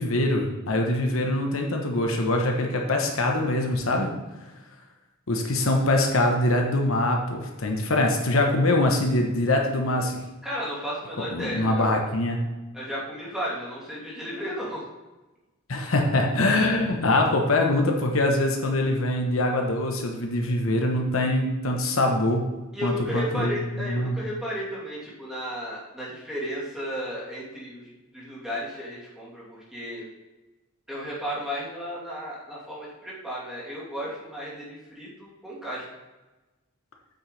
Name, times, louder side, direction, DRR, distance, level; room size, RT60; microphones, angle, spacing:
voice 1, 0.0-4.1 5.3-10.2 11.3-12.4 15.7-22.4 22.8-24.2, left 1 dB, 75° left, 2 dB, 1.0 m, -23 dB
voice 2, 2.7-3.1 10.4-12.0 12.7-14.8 22.7-30.1 30.9-35.8, equal, ahead, -7 dB, 2.5 m, -34 dB
7.9 x 6.5 x 3.3 m, 1.1 s
head